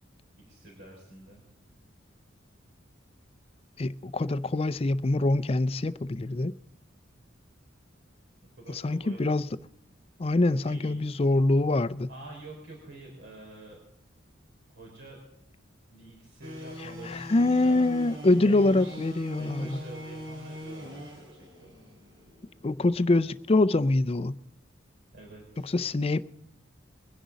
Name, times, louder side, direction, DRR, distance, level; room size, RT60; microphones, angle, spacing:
voice 1, 0.3-1.4 8.4-9.2 10.6-11.0 12.1-13.8 14.7-15.2 15.9-17.9 18.4-21.8 25.1-25.7, right 2 dB, 60° right, 4.2 m, -47 dB
voice 2, 3.8-6.5 8.7-9.5 10.2-12.1 17.1-19.8 22.6-24.3 25.7-26.2, left 2 dB, 30° left, 0.5 m, -24 dB
sound 1, 16.4-23.4, equal, 80° right, 7.0 m, -42 dB
23.0 x 10.0 x 4.0 m
head